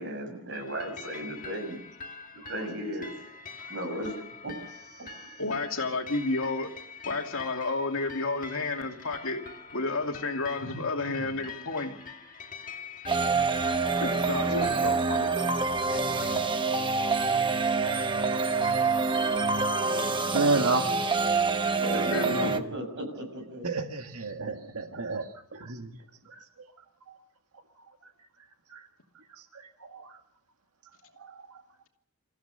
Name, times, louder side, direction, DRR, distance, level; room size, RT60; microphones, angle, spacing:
voice 1, 0.0-1.8 2.5-3.1 3.7-4.2 4.4-4.5 14.3-14.8 21.8-23.7, equal, 55° right, 5 dB, 6.4 m, -35 dB
sound 1, 0.5-14.9, left 5 dB, 35° left, 1.7 m, -45 dB
voice 2, 5.4-6.7 7.0-9.4 9.7-11.9 14.0-15.4 15.9-16.5 22.1-22.5, left 3 dB, 65° left, 3 dB, 2.7 m, -31 dB
voice 3, 10.6-11.3 13.4-13.5 13.9-14.0 18.3-18.5 19.2-19.5 20.0-20.9 22.2-22.6 23.6-26.0 26.2-26.7 27.1-27.2 28.7-28.9 29.1-30.2 31.1-31.6, right 3 dB, 75° right, 5 dB, 1.8 m, -33 dB
sound 2, 13.1-22.6, right 4 dB, 20° right, 1.0 m, -26 dB
28.0 x 15.0 x 6.7 m, 0.74 s
head